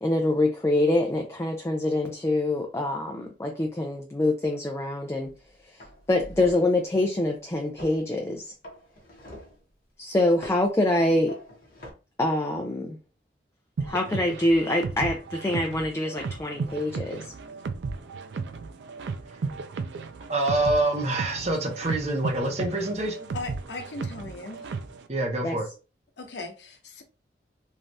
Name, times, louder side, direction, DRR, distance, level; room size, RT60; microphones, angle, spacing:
voice 1, 0.0-5.3 6.1-8.5 10.0-11.4 12.2-13.0 13.9-17.3 25.4-25.6, left 1 dB, 15° left, 0.3 m, -25 dB
sound 1, 5.2-5.4 5.8-6.8 7.8-8.0 8.6-9.6 10.4-10.7 11.3-11.9, equal, 50° left, 0.8 m, -44 dB
sound 2, 13.8-25.1, right 4 dB, 85° right, 0.4 m, -35 dB
voice 2, 20.3-23.3 25.1-25.7, right 2 dB, 35° right, 0.8 m, -26 dB
voice 3, 23.3-24.7 26.2-27.0, left 3 dB, 80° left, 0.7 m, -38 dB
3.2 x 2.3 x 2.6 m
head